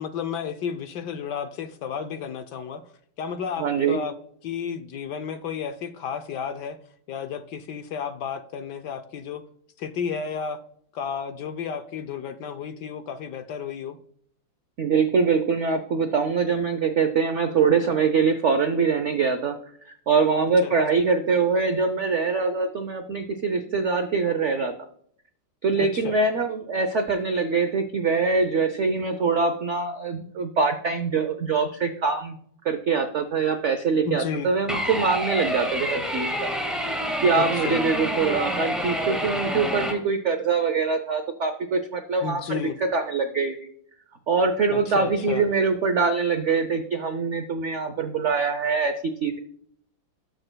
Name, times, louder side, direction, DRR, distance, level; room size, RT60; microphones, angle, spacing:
voice 1, 0.0-2.8 3.2-4.1 4.4-6.8 7.1-9.4 9.8-10.6 10.9-14.0 20.6-21.0 25.8-26.2 34.0-34.5 37.3-37.8 42.2-42.8 44.7-45.4, left 7 dB, 70° left, 9 dB, 1.1 m, -32 dB
voice 2, 3.6-4.0 14.8-19.6 20.1-24.7 25.6-32.4 32.6-36.5 37.2-43.7 44.3-48.9 49.2-49.4, right 5 dB, 90° right, 7 dB, 0.6 m, -23 dB
sound 1, 34.7-39.9, equal, ahead, 1.4 m, -28 dB
19.0 x 6.5 x 2.2 m, 0.64 s
omnidirectional pair, 2.2 m